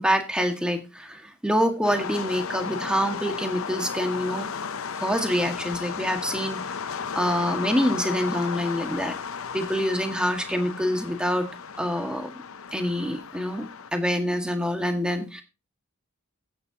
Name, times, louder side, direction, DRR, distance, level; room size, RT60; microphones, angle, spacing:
voice 1, 0.0-4.5 5.0-9.2 9.5-11.5 11.8-12.3 12.7-13.6 13.9-15.4, equal, 5° right, 4 dB, 1.8 m, -26 dB
sound 1, 1.8-13.9, left 6 dB, 70° left, 0.7 m, -34 dB
15.0 x 9.6 x 2.9 m, 0.28 s
head